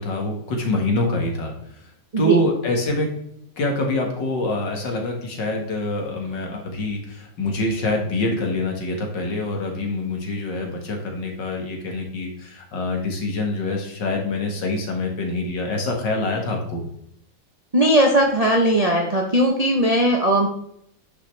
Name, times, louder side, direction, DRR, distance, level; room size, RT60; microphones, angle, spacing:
voice 1, 0.0-1.5 2.2-3.1 3.6-16.8, left 2 dB, 65° left, 1 dB, 2.3 m, -25 dB
voice 2, 17.7-20.5, right 1 dB, 45° right, 1 dB, 0.5 m, -18 dB
9.6 x 6.2 x 3.3 m, 0.71 s
omnidirectional pair, 2.1 m